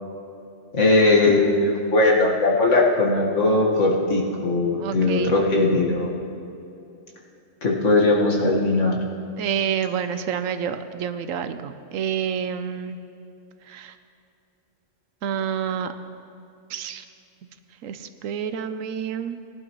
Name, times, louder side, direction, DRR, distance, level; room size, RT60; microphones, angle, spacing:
voice 1, 0.7-6.1 7.6-9.0, left 2 dB, 65° left, -2 dB, 2.0 m, -19 dB
voice 2, 4.8-5.3 9.4-13.0 13.7-13.9 15.2-15.9 16.7-17.0 17.8-19.4, right 8 dB, 85° right, 10 dB, 1.1 m, -28 dB
20.0 x 11.5 x 3.1 m, 2.7 s
omnidirectional pair, 1.3 m